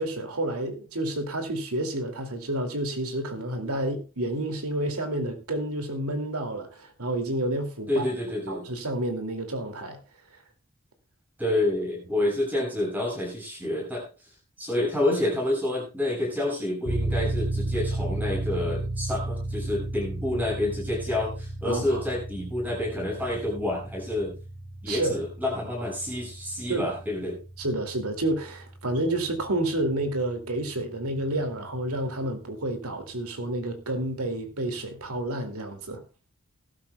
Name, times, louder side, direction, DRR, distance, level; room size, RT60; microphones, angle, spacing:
voice 1, 0.0-8.1 8.5-10.0 21.7-22.0 24.9-25.2 26.7-26.9 27.6-36.0, right 1 dB, 85° right, 2.5 m, -30 dB
voice 2, 7.9-8.7 11.4-14.1 14.6-24.3 24.8-27.4, left 1 dB, 10° right, 6.9 m, -28 dB
sound 1, 16.8-31.3, right 1 dB, 65° right, 7.5 m, -34 dB
20.0 x 12.0 x 2.3 m
head